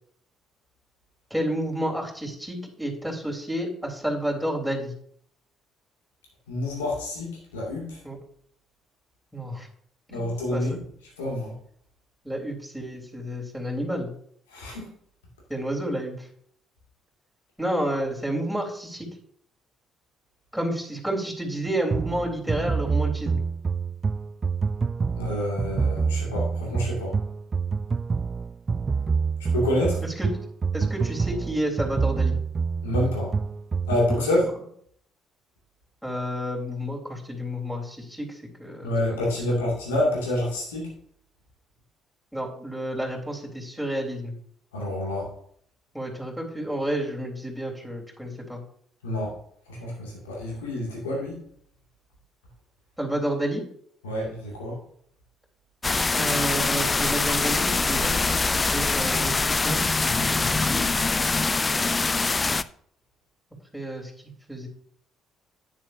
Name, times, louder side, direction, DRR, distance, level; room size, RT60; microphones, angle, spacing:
voice 1, 1.3-4.9 8.0-8.2 9.3-9.7 10.1-10.8 12.2-14.1 15.5-16.3 17.6-19.1 20.5-23.4 30.0-30.3 30.7-32.4 34.2-34.3 36.0-39.6 42.3-44.4 45.9-48.6 53.0-53.6 56.1-60.9 63.7-64.1 64.5-64.7, right 1 dB, ahead, 0 dB, 3.6 m, -30 dB
voice 2, 6.5-8.0 10.1-10.8 11.2-11.5 14.5-14.8 25.2-27.1 29.5-30.0 32.8-33.3 33.9-34.4 38.8-40.9 44.7-45.3 49.0-49.4 49.7-51.4 54.0-54.8, left 1 dB, 85° left, -3 dB, 2.3 m, -27 dB
sound 1, 21.9-34.4, right 5 dB, 35° right, 0.3 m, -27 dB
sound 2, 55.8-62.6, left 3 dB, 30° left, 0.5 m, -24 dB
10.0 x 9.2 x 2.7 m, 0.63 s
hypercardioid pair, 50°, 0 cm